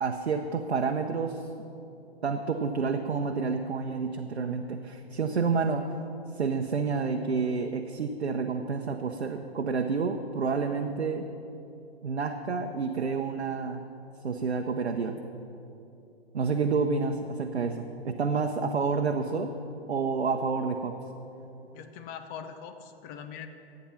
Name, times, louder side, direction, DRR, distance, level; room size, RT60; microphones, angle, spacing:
voice 1, 0.0-1.4 2.2-6.0 6.4-11.3 12.0-13.9 14.2-15.2 16.3-19.5 19.9-21.0, right 5 dB, 80° right, 3 dB, 0.8 m, -29 dB
voice 2, 21.7-23.5, left 7 dB, 25° left, 8 dB, 0.8 m, -42 dB
13.0 x 8.8 x 5.8 m, 2.8 s
figure-of-eight pair, 120°, 32 cm